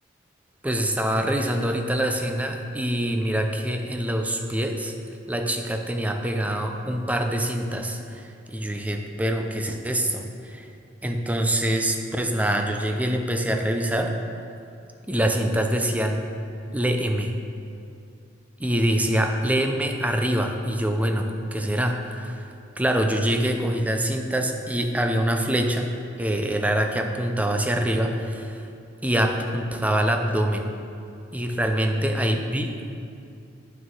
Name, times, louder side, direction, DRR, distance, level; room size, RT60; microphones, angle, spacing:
voice 1, 0.6-4.9 5.3-10.7 11.0-14.1 15.1-16.3 16.7-17.4 18.6-22.4 22.8-25.9 26.2-28.7 29.0-30.7 31.3-32.8, right 1 dB, 10° right, 4 dB, 0.5 m, -25 dB
9.1 x 6.1 x 3.7 m, 2.6 s
head